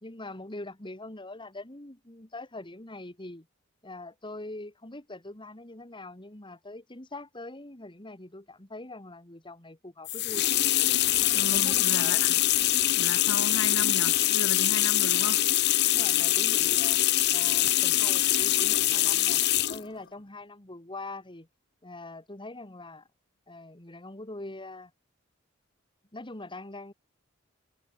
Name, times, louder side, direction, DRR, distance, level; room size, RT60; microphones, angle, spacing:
voice 1, 0.0-3.5 3.8-10.5 11.5-12.2 15.9-17.0 17.3-19.4 19.7-21.5 21.8-23.1 23.5-24.9 26.1-26.9, left 2 dB, 25° left, 2.4 m, -43 dB
sound 1, 10.1-19.8, left 15 dB, 55° left, 0.7 m, -24 dB
voice 2, 11.3-12.3 13.0-15.5, left 3 dB, 70° left, 2.3 m, -35 dB
head